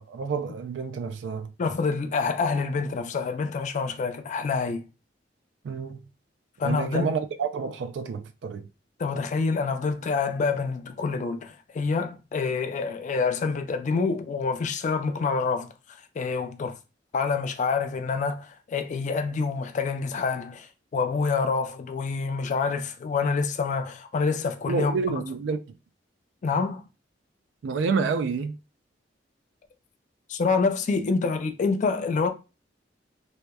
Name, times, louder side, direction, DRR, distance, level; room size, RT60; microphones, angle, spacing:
voice 1, 0.0-1.5 5.6-6.0 6.6-8.7 24.7-25.6 27.6-28.5, right 5 dB, 70° right, 0.3 m, -29 dB
voice 2, 1.6-4.8 6.6-7.1 9.0-15.7 16.2-16.8 17.1-20.7 20.9-25.2 26.4-26.8 30.3-32.3, left 4 dB, 40° left, 0.3 m, -27 dB
2.8 x 2.1 x 2.2 m
head